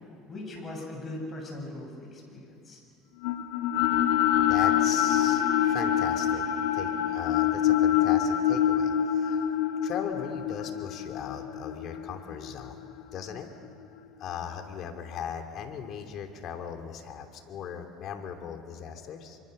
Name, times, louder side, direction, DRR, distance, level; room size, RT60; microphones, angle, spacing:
voice 1, 0.3-2.8, left 2 dB, 30° left, 0 dB, 7.7 m, -39 dB
sound 1, 3.2-13.4, left 10 dB, 90° left, 1.5 m, -26 dB
voice 2, 4.4-6.5 6.7-9.5 9.8-12.8 13.1-13.5 14.2-19.4, left 7 dB, 55° left, 5 dB, 2.8 m, -38 dB
26.5 x 24.0 x 6.7 m, 2.6 s
supercardioid pair, 110°, 0 cm